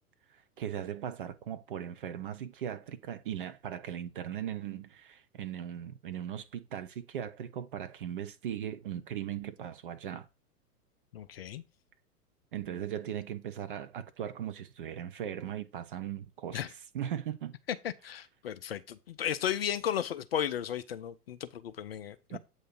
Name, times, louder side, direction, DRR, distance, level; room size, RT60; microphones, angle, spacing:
voice 1, 0.6-10.3 12.5-16.6 16.9-17.5 22.3-22.4, right 10 dB, 35° right, 0.5 m, -38 dB
voice 2, 11.1-11.6 16.5-16.7 17.8-22.4, left 9 dB, 45° left, 0.4 m, -35 dB
7.9 x 2.7 x 6.0 m
figure-of-eight pair, 105°, 46 cm